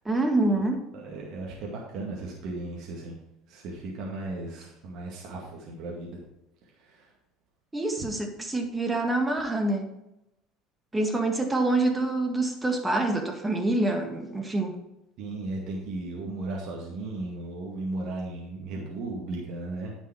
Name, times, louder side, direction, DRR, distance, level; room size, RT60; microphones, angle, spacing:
voice 1, 0.0-0.8 7.7-9.9 10.9-14.8, right 2 dB, 15° right, 3 dB, 1.9 m, -26 dB
voice 2, 0.9-3.2 3.5-6.2 6.8-7.1 15.2-19.9, right 2 dB, 65° right, -2 dB, 2.0 m, -36 dB
9.9 x 5.6 x 4.7 m, 0.88 s
supercardioid pair, 95°, 0 cm